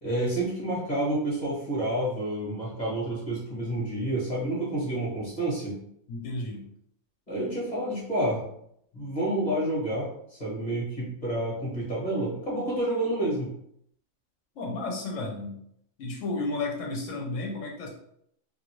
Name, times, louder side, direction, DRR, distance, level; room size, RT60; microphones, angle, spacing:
voice 1, 0.0-5.8 7.3-8.4 8.9-13.5, right 1 dB, 35° left, -6 dB, 1.1 m, -29 dB
voice 2, 6.1-6.6 14.6-15.6 16.0-17.9, left 2 dB, 65° left, -1 dB, 1.0 m, -32 dB
2.6 x 2.5 x 3.0 m, 0.72 s
omnidirectional pair, 1.5 m